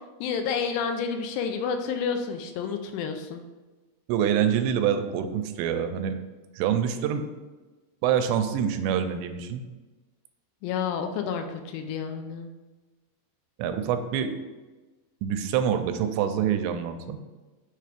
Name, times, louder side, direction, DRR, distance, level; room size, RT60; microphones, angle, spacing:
voice 1, 0.2-3.4 10.6-12.5, left 6 dB, 85° left, 6 dB, 2.6 m, -30 dB
voice 2, 4.1-6.2 6.6-7.3 8.0-9.7 13.6-14.3 15.2-17.3, right 8 dB, 85° right, 8 dB, 2.7 m, -26 dB
6.7 x 3.3 x 5.0 m, 1.2 s
omnidirectional pair, 5.0 m